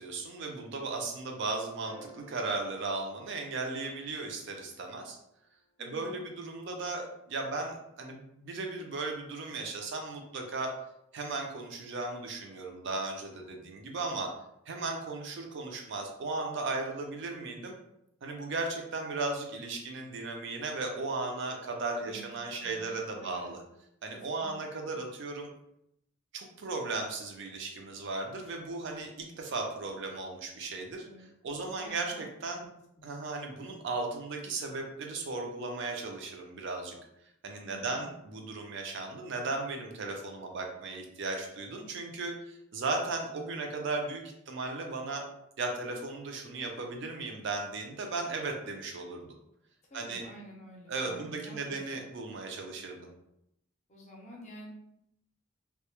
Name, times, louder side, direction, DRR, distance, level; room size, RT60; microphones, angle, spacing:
voice 1, 0.0-5.2 5.8-10.7 11.1-14.3 14.7-17.7 18.2-23.6 24.0-25.5 26.3-32.6 33.0-37.0 37.4-45.2 45.6-49.3 49.9-50.2 50.9-53.1, right 3 dB, 60° right, 2 dB, 0.4 m, -36 dB
sound 1, 1.8-4.4 6.6-6.7, right 2 dB, 80° right, 0.9 m, -55 dB
voice 2, 5.8-6.2 22.0-22.2 22.6-23.5 24.1-25.0 31.0-31.3 31.8-32.2 32.6-32.7 37.6-38.1 49.9-51.8 53.9-54.7, right 1 dB, 35° left, -1 dB, 0.5 m, -50 dB
2.2 x 2.0 x 2.9 m, 0.80 s
head